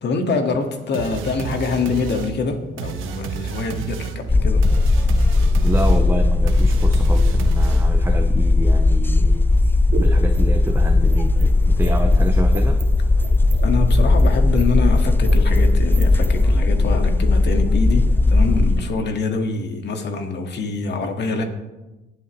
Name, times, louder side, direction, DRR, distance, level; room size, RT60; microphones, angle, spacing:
voice 1, 0.0-4.7 13.6-21.4, left 4 dB, 60° left, 4 dB, 1.8 m, -25 dB
sound 1, 0.9-8.1, right 7 dB, 90° right, 1.2 m, -30 dB
sound 2, 4.3-18.8, left 2 dB, 10° left, 0.3 m, -17 dB
voice 2, 5.6-9.5 10.0-12.8, right 2 dB, 10° right, 4 dB, 0.8 m, -27 dB
sound 3, 9.5-16.4, right 5 dB, 60° right, 1.5 m, -32 dB
19.0 x 8.2 x 3.1 m, 1.1 s
cardioid pair, 90°, 20 cm